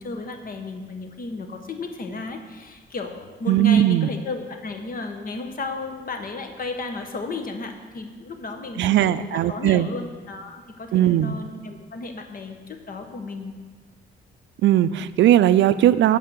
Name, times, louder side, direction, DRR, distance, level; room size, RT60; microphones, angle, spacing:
voice 1, 0.0-13.5, left 3 dB, 45° left, 5 dB, 1.2 m, -34 dB
voice 2, 3.5-4.1 8.8-9.9 10.9-11.3 14.6-16.2, right 12 dB, 70° right, 15 dB, 0.4 m, -18 dB
8.5 x 5.4 x 7.5 m, 1.5 s
cardioid pair, 90°, 20 cm